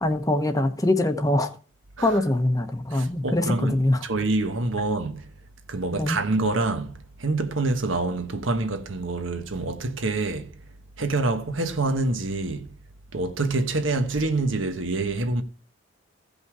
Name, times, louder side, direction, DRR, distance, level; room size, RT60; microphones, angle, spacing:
voice 1, 0.0-1.5 2.0-4.1 5.9-6.2, left 1 dB, 15° left, 0.9 m, -23 dB
voice 2, 2.9-5.2 5.7-6.9 7.2-10.5 11.0-12.7 13.1-15.4, right 2 dB, 75° right, 1.2 m, -26 dB
15.5 x 5.4 x 4.8 m
head